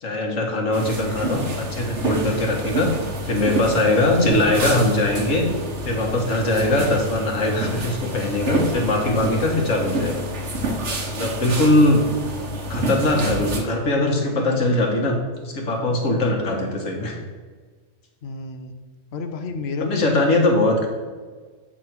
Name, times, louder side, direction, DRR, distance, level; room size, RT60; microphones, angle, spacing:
voice 1, 0.0-5.5 5.8-10.2 11.0-12.0 12.7-15.2 15.4-17.2 19.8-20.9, left 1 dB, 80° left, 1 dB, 1.7 m, -21 dB
sound 1, 0.7-13.6, right 1 dB, 65° right, 1.3 m, -28 dB
voice 2, 18.2-18.8 19.1-20.2, left 4 dB, 60° left, 7 dB, 1.0 m, -31 dB
8.3 x 3.8 x 5.9 m, 1.5 s
omnidirectional pair, 1.3 m